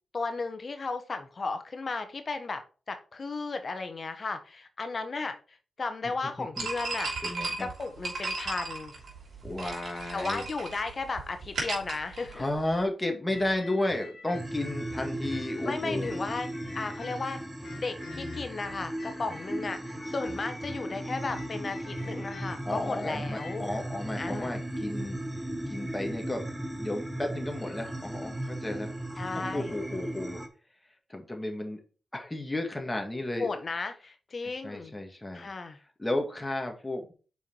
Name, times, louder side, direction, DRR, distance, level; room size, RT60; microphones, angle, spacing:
voice 1, 0.1-7.1 7.6-8.9 10.1-12.4 15.6-16.5 16.7-17.4 17.7-23.7 24.2-24.5 29.2-29.7 33.4-34.9 35.3-35.8, left 3 dB, 50° left, 8 dB, 1.2 m, -35 dB
sound 1, 6.6-12.8, right 3 dB, 65° right, 3.0 m, -36 dB
voice 2, 7.2-7.7 9.4-10.4 12.3-16.1 22.7-25.2 25.7-26.4 26.8-29.0 29.3-30.4 31.1-31.8 32.1-33.5 34.6-35.5 36.0-37.1, left 1 dB, 20° left, 3 dB, 1.9 m, -33 dB
sound 2, 13.3-17.3 17.6-23.6, left 3 dB, 65° left, 2.0 m, -46 dB
sound 3, 14.3-30.5, right 1 dB, 10° right, 1.1 m, -36 dB
5.8 x 4.5 x 4.6 m, 0.36 s
supercardioid pair, 45°, 0 cm